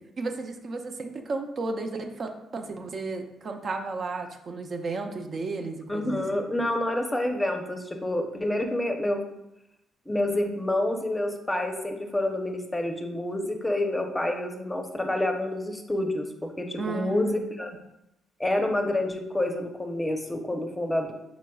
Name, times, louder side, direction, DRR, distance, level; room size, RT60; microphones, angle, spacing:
voice 1, 0.2-6.2 16.8-17.4, right 3 dB, 45° right, 4 dB, 0.5 m, -33 dB
voice 2, 5.9-9.3 10.1-17.7 18.4-21.1, left 1 dB, 10° left, 4 dB, 0.7 m, -28 dB
5.0 x 4.0 x 2.3 m, 0.86 s
cardioid pair, 90°, 0 cm